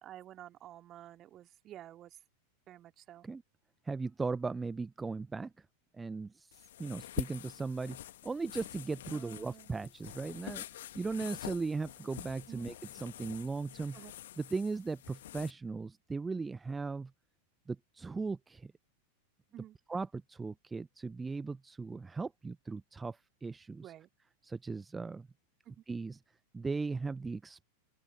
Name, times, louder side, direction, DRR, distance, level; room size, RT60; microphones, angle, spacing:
voice 1, 0.0-2.2 2.7-3.3 9.1-9.7 12.5-12.7 13.9-14.1 19.5-19.8 23.8-24.1 25.6-25.8, right 12 dB, 30° right, 2.5 m, -51 dB
voice 2, 3.8-5.7 5.9-14.0 14.4-17.1 17.7-18.7 19.9-23.9 24.4-25.3 25.9-26.2 26.5-27.7, right 4 dB, 10° right, 0.8 m, -38 dB
sound 1, 6.5-15.5, left 13 dB, 60° left, 1.8 m, -46 dB
open air
figure-of-eight pair, 90°, 0 cm